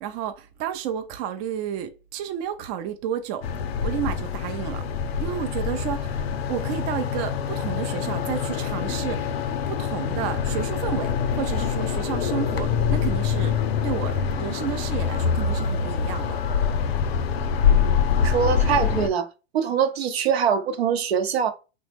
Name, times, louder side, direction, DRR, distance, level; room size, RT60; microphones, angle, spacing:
voice 1, 0.0-3.4 3.8-4.8 5.2-9.4 9.7-13.5 13.8-16.4, right 9 dB, 40° right, 0.4 m, -31 dB
sound 1, 3.4-19.1, left 6 dB, 75° left, 0.6 m, -25 dB
voice 2, 18.2-19.3 19.5-21.5, right 7 dB, 80° right, 0.7 m, -23 dB
3.1 x 2.1 x 3.3 m
hypercardioid pair, 120°, 31 cm